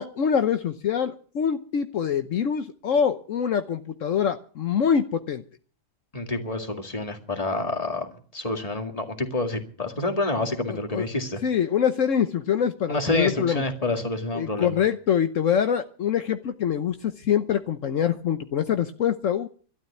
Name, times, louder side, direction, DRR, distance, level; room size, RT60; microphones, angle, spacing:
voice 1, 0.0-5.4 10.7-11.1 11.4-13.6 14.3-19.5, left 8 dB, 70° left, 8 dB, 1.2 m, -24 dB
voice 2, 6.1-8.1 8.3-11.4 12.9-14.8, left 2 dB, 25° left, 5 dB, 2.2 m, -28 dB
12.5 x 12.0 x 8.3 m, 0.43 s
omnidirectional pair, 1.4 m